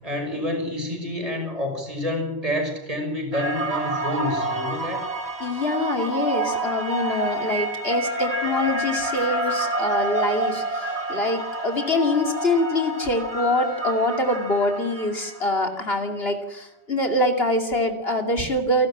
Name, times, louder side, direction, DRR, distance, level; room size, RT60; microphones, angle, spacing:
voice 1, 0.0-5.0, left 1 dB, 30° right, 3 dB, 6.0 m, -28 dB
sound 1, 3.3-15.6, right 2 dB, 65° right, 3.0 m, -28 dB
voice 2, 5.4-18.9, left 1 dB, 55° left, 5 dB, 2.9 m, -24 dB
30.0 x 12.0 x 8.7 m, 0.80 s
omnidirectional pair, 1.2 m